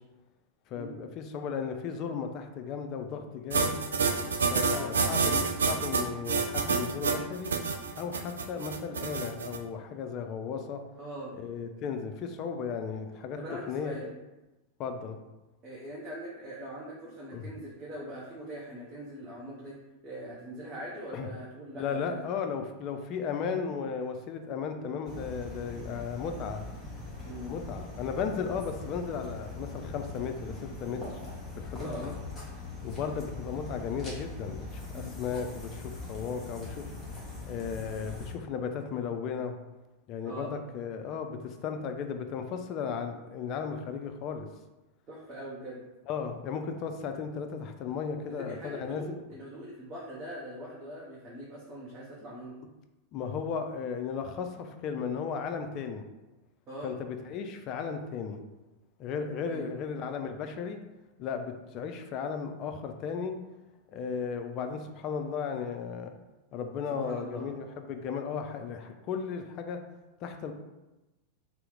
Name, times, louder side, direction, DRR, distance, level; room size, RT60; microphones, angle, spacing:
voice 1, 0.7-3.8 4.5-7.5 8.0-10.8 11.3-13.4 13.7-14.1 14.8-15.2 17.3-17.5 21.1-21.3 21.7-26.6 27.5-31.0 31.6-32.1 32.8-36.9 37.5-39.6 40.1-44.5 46.1-49.1 53.1-56.0 56.8-58.4 59.0-60.8 61.2-63.4 63.9-66.1 66.5-69.8 70.2-70.5, left 6 dB, 40° left, 6 dB, 0.3 m, -35 dB
sound 1, 3.5-9.6, right 4 dB, 70° right, 0.3 m, -28 dB
voice 2, 11.0-11.3 13.4-14.1 15.6-19.8 20.0-22.2 27.2-27.6 31.8-32.1 34.9-35.2 40.2-40.5 45.1-45.8 48.4-52.6 56.7-57.0 59.5-59.7 67.0-67.5, right 1 dB, 30° right, -6 dB, 0.7 m, -42 dB
sound 2, 25.0-38.3, left 2 dB, 10° left, 1.1 m, -41 dB
2.8 x 2.0 x 3.6 m, 1.0 s
figure-of-eight pair, 90°, 0 cm